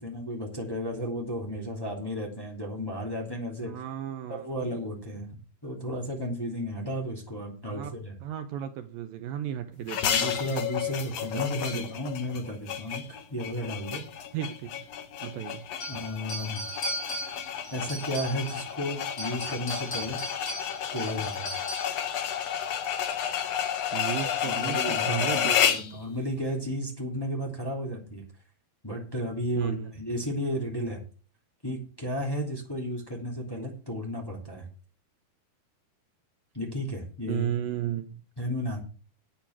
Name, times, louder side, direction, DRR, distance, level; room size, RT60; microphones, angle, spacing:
voice 1, 0.0-3.7 4.3-8.1 10.1-14.0 15.9-16.7 17.7-20.2 20.9-21.6 24.4-28.2 28.8-31.0 31.6-34.7 36.5-37.5 38.4-38.8, equal, 5° left, -1 dB, 2.4 m, -33 dB
voice 2, 3.6-4.5 7.7-7.9 8.2-10.3 11.3-11.4 11.7-11.8 14.3-14.7 15.2-15.7 23.9-25.8 29.6-29.9 37.3-38.2, right 11 dB, 75° right, 8 dB, 2.3 m, -34 dB
sound 1, 9.9-25.9, left 9 dB, 65° left, 1.6 m, -31 dB
sound 2, 15.8-18.7 19.1-22.1, equal, 35° left, 3.7 m, -37 dB
9.3 x 8.6 x 6.0 m, 0.37 s
omnidirectional pair, 4.4 m